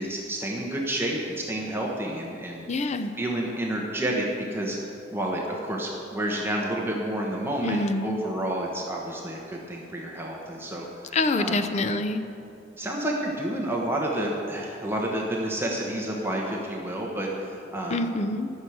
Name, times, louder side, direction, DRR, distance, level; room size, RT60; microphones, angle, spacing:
voice 1, 0.0-2.9 3.1-4.3 4.5-11.6 12.8-18.1, right 1 dB, 15° right, -2 dB, 1.2 m, -30 dB
voice 2, 2.7-3.1 7.6-8.2 11.1-12.3 17.9-18.5, left 2 dB, 40° left, 9 dB, 0.6 m, -26 dB
13.5 x 6.4 x 7.8 m, 2.8 s
head